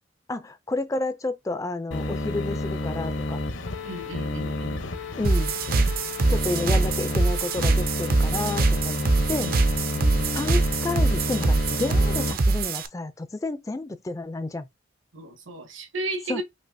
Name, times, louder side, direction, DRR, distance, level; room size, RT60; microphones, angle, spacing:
voice 1, 0.3-3.4 5.2-5.5 6.3-9.5 10.3-14.7 16.3-16.4, left 2 dB, 15° left, 0.3 m, -30 dB
sound 1, 1.9-12.3, left 2 dB, 75° left, 0.8 m, -30 dB
voice 2, 3.8-4.9 9.4-9.5 9.9-10.4 15.1-16.4, right 2 dB, 80° right, 1.4 m, -34 dB
sound 2, 5.2-12.9, right 3 dB, 45° right, 0.5 m, -23 dB
5.5 x 2.8 x 2.6 m
head